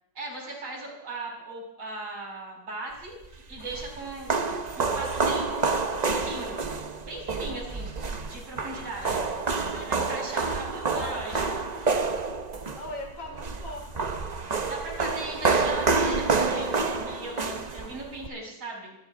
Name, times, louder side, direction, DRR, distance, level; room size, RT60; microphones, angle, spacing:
voice 1, 0.1-4.4 4.7-6.6 7.1-7.9 8.3-9.2 9.9-11.5 14.7-19.0, right 2 dB, 90° right, -2 dB, 5.0 m, -38 dB
sound 1, 3.2-18.3, right 4 dB, 55° right, 0.4 m, -28 dB
voice 2, 10.9-11.7 12.7-14.3, left 2 dB, 80° left, 1 dB, 4.0 m, -40 dB
25.0 x 12.0 x 3.7 m, 0.85 s
omnidirectional pair, 2.1 m